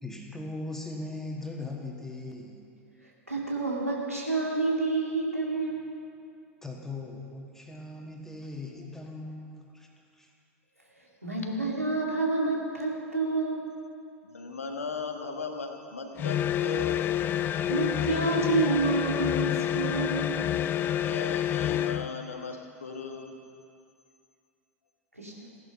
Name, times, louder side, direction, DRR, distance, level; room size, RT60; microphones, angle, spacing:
voice 1, 0.0-2.6 6.6-9.9 10.1-10.3, left 2 dB, 5° left, 0 dB, 2.0 m, -39 dB
voice 2, 3.3-5.9 11.2-13.7 17.7-20.4 25.2-25.3, right 3 dB, 90° right, -3 dB, 2.5 m, -28 dB
voice 3, 14.2-17.1 21.0-23.3, left 4 dB, 75° left, 4 dB, 1.4 m, -37 dB
sound 1, 16.2-22.1, left 11 dB, 25° left, 0.4 m, -28 dB
16.0 x 10.5 x 5.6 m, 2.4 s
figure-of-eight pair, 85°, 8 cm